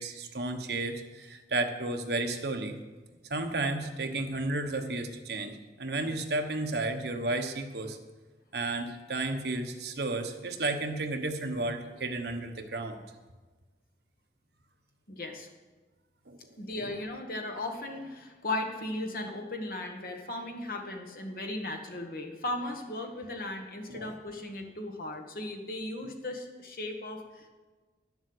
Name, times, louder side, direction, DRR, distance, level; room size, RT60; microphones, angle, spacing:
voice 1, 0.0-2.8 3.3-8.0 8.5-13.0 16.3-16.9 23.9-24.1, right 2 dB, 70° right, 5 dB, 1.1 m, -33 dB
voice 2, 15.1-15.5 16.6-27.5, left 2 dB, 55° left, 3 dB, 1.5 m, -37 dB
10.5 x 7.3 x 7.9 m, 1.3 s
head